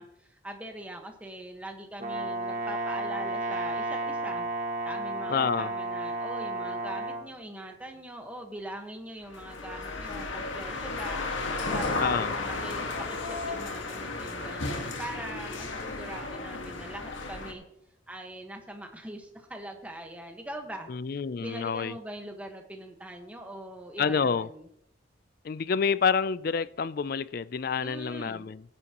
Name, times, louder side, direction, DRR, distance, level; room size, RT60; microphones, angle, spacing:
voice 1, 0.0-4.5 4.8-11.3 11.6-12.9 13.2-17.6 18.1-24.7 27.8-28.5, right 1 dB, 5° right, 1.4 m, -42 dB
Brass instrument, 2.0-7.2, right 2 dB, 40° right, 1.6 m, -32 dB
voice 2, 5.3-5.7 12.0-12.3 20.9-21.9 24.0-24.5 25.4-28.6, left 6 dB, 50° left, 0.4 m, -28 dB
sound 1, 9.3-17.5, left 3 dB, 80° left, 1.7 m, -34 dB
18.0 x 9.8 x 3.0 m
head